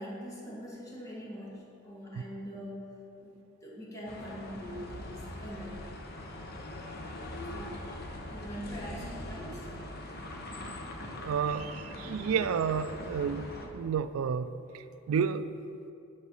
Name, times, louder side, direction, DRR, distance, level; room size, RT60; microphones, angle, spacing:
voice 1, 0.0-6.0 7.5-8.0 8.3-9.7, equal, 15° left, -6 dB, 1.9 m, -43 dB
sound 1, 4.1-13.7, left 1 dB, 50° left, 1.0 m, -42 dB
voice 2, 11.2-14.5 14.7-15.5, right 7 dB, 85° right, 12 dB, 0.3 m, -31 dB
9.8 x 5.0 x 6.3 m, 2.8 s
head